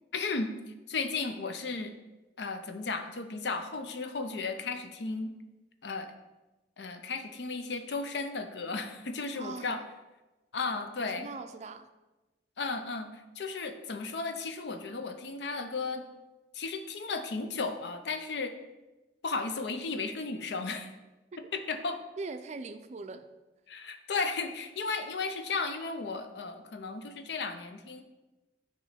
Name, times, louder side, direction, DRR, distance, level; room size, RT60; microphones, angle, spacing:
voice 1, 0.1-0.5 0.9-1.9 2.4-5.3 5.8-6.1 6.8-9.8 10.5-11.3 12.6-16.1 16.5-18.6 19.2-20.9 21.5-22.0 23.7-28.0, left 4 dB, 75° left, 7 dB, 0.6 m, -34 dB
voice 2, 9.4-9.8 11.0-11.9 22.2-23.3, right 3 dB, 40° right, 9 dB, 0.4 m, -41 dB
7.3 x 3.1 x 5.6 m, 1.1 s
head